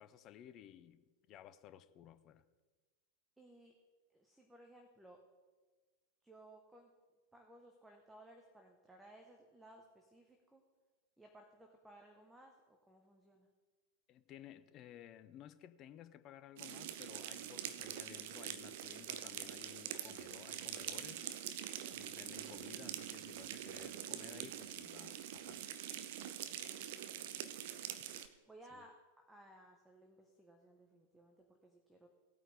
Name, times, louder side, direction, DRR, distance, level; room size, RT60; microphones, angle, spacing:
voice 1, 0.0-2.4 14.1-21.3 21.9-25.7 28.7-28.8, left 11 dB, 35° left, 0.6 m, -56 dB
voice 2, 3.4-3.7 4.1-5.2 6.2-6.9 7.3-10.6 11.2-13.5 20.0-20.2 28.5-32.1, right 1 dB, 5° right, 1.2 m, -60 dB
sound 1, 16.6-28.3, right 11 dB, 50° right, 0.8 m, -45 dB
17.5 x 8.8 x 3.4 m
figure-of-eight pair, 90°, 0 cm